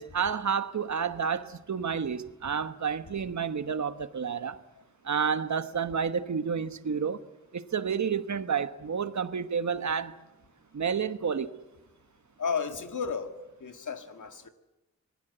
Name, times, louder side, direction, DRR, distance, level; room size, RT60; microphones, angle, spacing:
voice 1, 0.0-4.6 5.0-7.2 7.5-10.1 10.7-11.5, right 6 dB, 65° right, 1.2 m, -30 dB
voice 2, 12.4-13.3 13.6-14.5, left 6 dB, 80° left, 2.0 m, -33 dB
26.5 x 20.5 x 8.0 m
wide cardioid pair, 100°, 30 cm